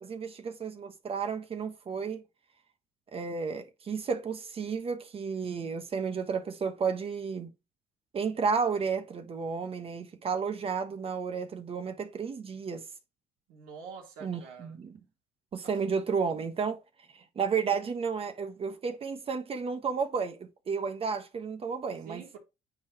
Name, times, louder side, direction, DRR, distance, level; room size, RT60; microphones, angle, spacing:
voice 1, 0.0-2.2 3.1-7.5 8.1-12.8 14.2-15.0 15.5-16.8 17.1-22.2, right 5 dB, 40° right, 1.3 m, -32 dB
voice 2, 13.5-14.8 15.6-15.8 22.1-22.4, right 6 dB, 80° right, 3.4 m, -46 dB
9.3 x 4.9 x 3.0 m
cardioid pair, 95°, 15 cm